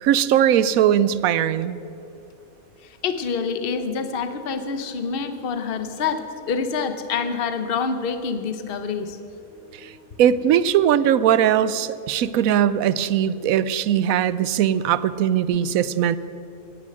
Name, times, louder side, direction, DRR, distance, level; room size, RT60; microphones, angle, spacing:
voice 1, 0.0-1.8 10.2-16.2, right 10 dB, 75° right, 16 dB, 1.0 m, -20 dB
voice 2, 2.8-9.2 9.8-10.2 15.5-15.6, left 5 dB, 45° left, 9 dB, 1.0 m, -27 dB
17.0 x 9.8 x 7.7 m, 2.8 s
omnidirectional pair, 1.5 m